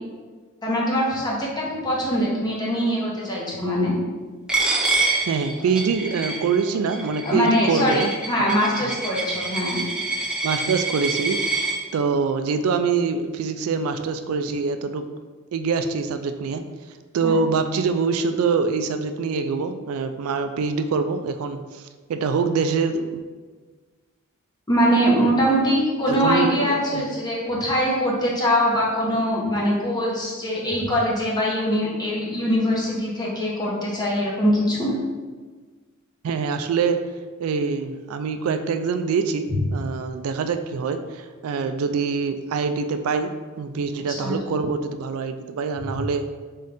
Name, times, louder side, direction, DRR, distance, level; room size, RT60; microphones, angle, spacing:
voice 1, 0.6-4.0 7.2-9.8 17.2-17.3 24.7-34.9 44.1-44.4, equal, 20° left, -5 dB, 1.1 m, -22 dB
Coin (dropping), 4.5-11.8, right 3 dB, 5° right, 0.5 m, -26 dB
voice 2, 5.3-8.1 8.4-8.6 10.4-11.4 11.9-15.0 15.5-16.6 17.1-21.8 22.1-23.2 26.1-27.0 36.2-37.0 37.4-43.3 43.6-46.3, right 5 dB, 75° right, 8 dB, 0.3 m, -24 dB
4.1 x 3.7 x 3.4 m, 1.4 s
head